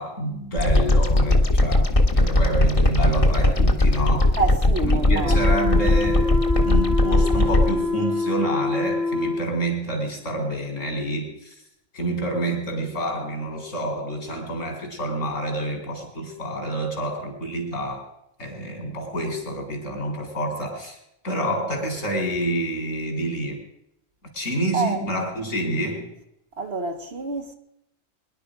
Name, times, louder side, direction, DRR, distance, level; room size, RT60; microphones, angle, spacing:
voice 1, 0.0-4.3 4.8-6.3 6.6-11.6 11.9-18.1 18.4-21.0 21.2-23.6 24.3-26.1, right 1 dB, 70° left, 4.5 m, -28 dB
sound 1, 0.6-7.7, left 1 dB, 25° left, 1.6 m, -19 dB
voice 2, 4.4-5.4 24.7-25.1 26.6-27.5, right 3 dB, 55° right, 1.6 m, -27 dB
sound 2, 5.2-9.5, left 3 dB, 35° right, 1.3 m, -25 dB
22.5 x 11.0 x 5.0 m
omnidirectional pair, 1.3 m